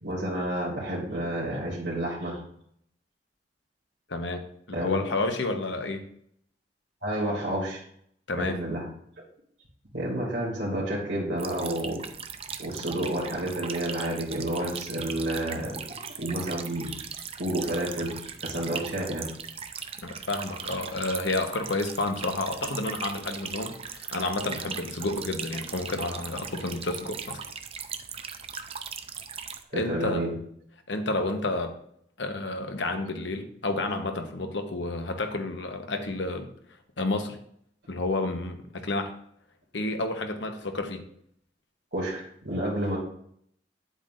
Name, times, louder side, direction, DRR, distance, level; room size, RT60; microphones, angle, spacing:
voice 1, 0.0-2.4 4.7-5.0 7.0-7.8 8.4-8.9 9.9-12.0 12.6-17.0 17.4-19.3 29.7-30.4 41.9-43.0, right 1 dB, 70° right, 2.5 m, -30 dB
voice 2, 4.1-6.1 8.3-8.6 20.0-27.4 29.7-30.3 30.9-31.8 32.2-36.5 37.0-37.4 37.9-39.1 39.7-41.1, left 2 dB, 80° left, 1.0 m, -30 dB
sound 1, 11.4-29.6, right 7 dB, 35° right, 0.6 m, -39 dB
9.4 x 8.0 x 2.6 m
head